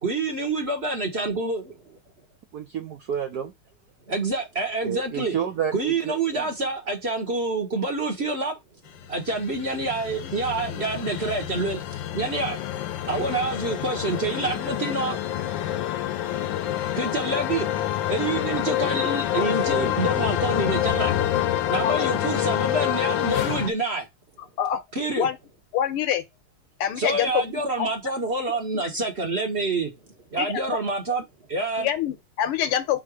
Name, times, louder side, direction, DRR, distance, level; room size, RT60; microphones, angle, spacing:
voice 1, 0.0-2.0 4.1-5.3 5.7-8.6 9.1-15.2 17.0-17.7 18.1-21.1 21.7-24.1 24.9-25.3 27.0-29.9 30.3-31.9, right 3 dB, 35° right, 1.2 m, -27 dB
voice 2, 2.5-3.5 4.8-6.5, right 8 dB, 70° right, 0.9 m, -30 dB
sound 1, 9.0-23.7, left 12 dB, 70° left, 1.3 m, -27 dB
voice 3, 25.7-26.2 26.8-27.9 28.7-28.8 30.4-30.6 31.8-33.0, left 10 dB, 85° left, 1.8 m, -26 dB
5.5 x 3.9 x 4.8 m
omnidirectional pair, 2.4 m